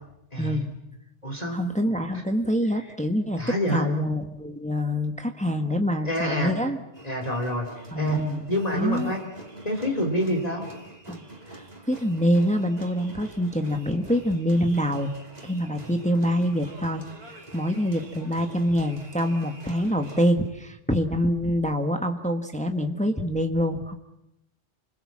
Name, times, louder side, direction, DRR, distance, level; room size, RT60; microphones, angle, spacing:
voice 1, 0.3-0.7 1.2-1.6 2.1-2.2 3.4-3.9 6.0-6.6 7.0-7.7 7.9-8.2 8.5-9.2 9.6-10.7 15.8-16.0, equal, 30° left, 2 dB, 3.4 m, -27 dB
voice 2, 1.5-3.4 3.7-6.8 7.9-8.4 8.7-9.1 11.1-11.2 11.9-15.1 15.4-24.0, equal, 5° left, 5 dB, 1.4 m, -25 dB
sound 1, 6.9-20.3, right 2 dB, 35° right, 2.9 m, -46 dB
29.0 x 21.5 x 7.5 m, 0.86 s
omnidirectional pair, 1.2 m